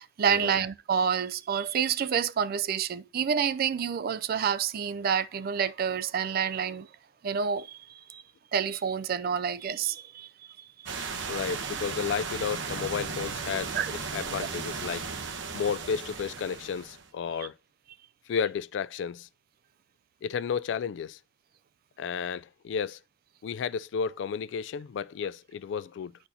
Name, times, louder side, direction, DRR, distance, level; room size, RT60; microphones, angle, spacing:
voice 1, 0.0-6.9 7.2-8.2 8.5-10.9 13.7-13.9, right 7 dB, 55° right, 0.4 m, -28 dB
sound 1, 10.9-17.1, right 5 dB, 90° right, 0.9 m, -36 dB
voice 2, 11.0-13.8 14.1-15.1 15.5-17.6 18.3-19.3 20.2-21.2 22.0-23.0 23.4-26.1, left 6 dB, 70° left, 0.3 m, -32 dB
10.0 x 4.3 x 2.7 m
head